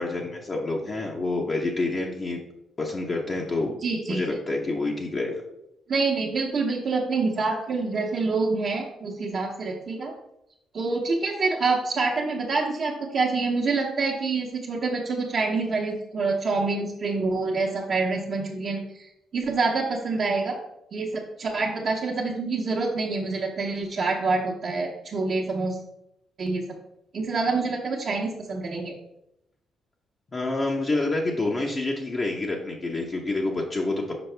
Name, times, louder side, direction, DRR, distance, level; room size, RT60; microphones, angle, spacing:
voice 1, 0.0-2.4 2.8-3.7 4.1-5.4 30.3-34.1, left 2 dB, 35° left, -1 dB, 0.8 m, -27 dB
voice 2, 3.8-4.2 5.9-10.1 10.7-20.6 20.9-25.8 26.4-26.6 27.1-28.9, right 3 dB, 50° right, -5 dB, 0.9 m, -26 dB
6.0 x 4.7 x 3.3 m, 0.83 s
cardioid pair, 90°, 0 cm